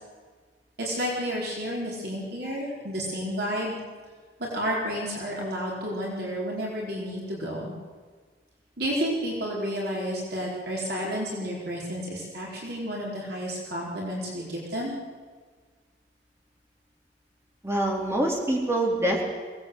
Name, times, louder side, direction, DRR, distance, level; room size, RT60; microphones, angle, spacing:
voice 1, 0.8-3.8 4.4-7.7 8.8-14.9, equal, 60° right, -3 dB, 4.9 m, -31 dB
voice 2, 17.6-19.2, right 1 dB, 15° right, -1 dB, 4.1 m, -25 dB
24.5 x 19.0 x 8.2 m, 1.6 s
head